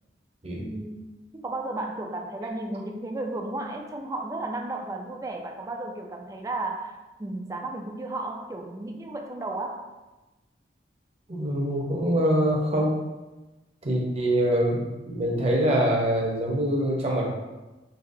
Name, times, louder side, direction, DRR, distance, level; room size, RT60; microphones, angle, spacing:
voice 1, 0.6-9.9, right 2 dB, 15° right, 3 dB, 0.3 m, -34 dB
voice 2, 11.3-12.9 13.8-17.3, right 1 dB, 35° right, -1 dB, 0.7 m, -24 dB
5.4 x 2.8 x 2.6 m, 1.1 s
head